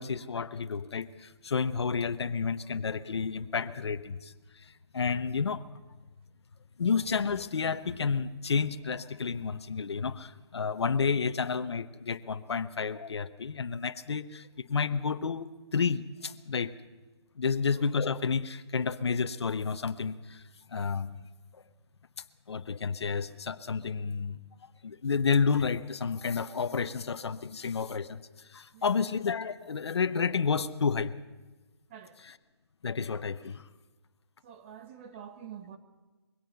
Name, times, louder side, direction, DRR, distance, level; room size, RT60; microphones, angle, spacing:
voice 1, 0.0-5.6 6.8-16.7 17.4-20.4 20.7-21.2 21.5-21.6 22.5-24.4 24.8-31.1 32.2-32.4 32.8-33.7, left 5 dB, 70° left, 1.0 m, -31 dB
voice 2, 34.4-35.8, right 8 dB, 25° right, 1.4 m, -46 dB
22.0 x 17.0 x 6.9 m
hypercardioid pair, 160°, 14 cm